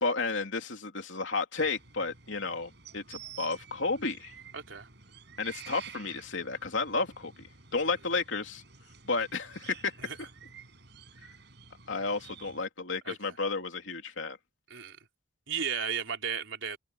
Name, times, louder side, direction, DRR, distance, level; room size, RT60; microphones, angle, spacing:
voice 1, 0.0-4.3 5.4-7.5 7.7-8.6 9.1-9.9 11.9-14.4, left 3 dB, 75° left, 3.0 m, -32 dB
sound 1, 1.6-12.6, right 7 dB, 55° right, 7.6 m, -51 dB
voice 2, 4.5-4.9 10.0-10.2 13.1-13.3 14.7-15.0 15.5-16.8, right 7 dB, 75° right, 3.9 m, -34 dB
open air
head